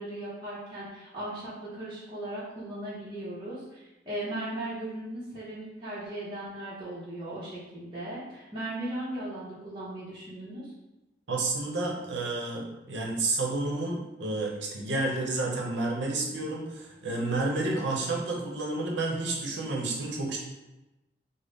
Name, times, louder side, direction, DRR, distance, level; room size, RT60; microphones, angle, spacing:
voice 1, 0.0-10.7, right 1 dB, 25° right, -10 dB, 0.7 m, -37 dB
voice 2, 11.3-20.4, right 2 dB, 80° right, -1 dB, 0.7 m, -30 dB
3.5 x 2.0 x 3.8 m, 1.0 s
head